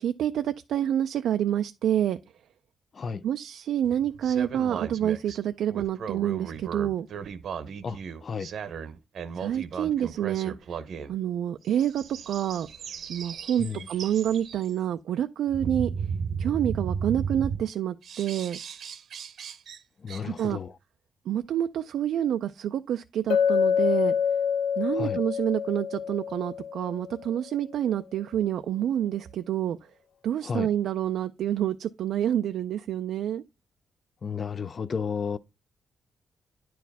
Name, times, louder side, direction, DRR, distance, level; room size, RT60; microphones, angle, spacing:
voice 1, 0.0-2.2 3.2-7.1 9.4-10.5 11.1-12.7 13.1-15.9 16.4-18.6 20.2-20.6 21.3-24.1 24.8-29.8 30.2-33.4, right 10 dB, 75° right, 0.4 m, -28 dB
voice 2, 2.9-3.2 7.8-8.5 13.6-13.9 20.0-20.7 24.9-25.2 30.4-30.7 34.2-35.4, left 6 dB, 35° left, 0.4 m, -32 dB
sound 1, 3.8-5.4 5.7-11.1 11.8-14.7 15.5-17.7 18.0-19.8 20.1-20.5, right 6 dB, 60° right, 0.8 m, -35 dB
Chink clink, 23.3-27.3, left 7 dB, 80° left, 0.8 m, -26 dB
10.0 x 4.6 x 3.4 m
cardioid pair, 150°, 0 cm